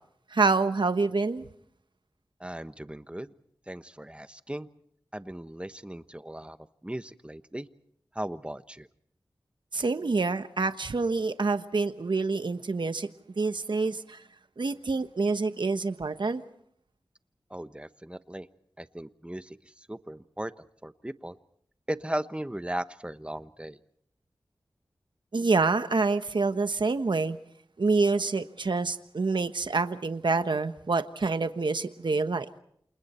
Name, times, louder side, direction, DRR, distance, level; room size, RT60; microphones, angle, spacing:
voice 1, 0.3-1.5 9.7-13.1 13.4-14.2 14.6-16.4 25.3-27.4 27.8-32.5, right 3 dB, 70° right, 9 dB, 1.2 m, -27 dB
voice 2, 2.4-3.3 3.7-4.7 5.1-6.6 6.8-7.7 8.1-8.9 17.5-18.5 18.8-19.6 19.9-20.5 20.8-21.4 21.9-23.8, right 1 dB, 15° right, 11 dB, 1.2 m, -37 dB
29.0 x 28.0 x 4.4 m, 0.69 s
cardioid pair, 45°, 8 cm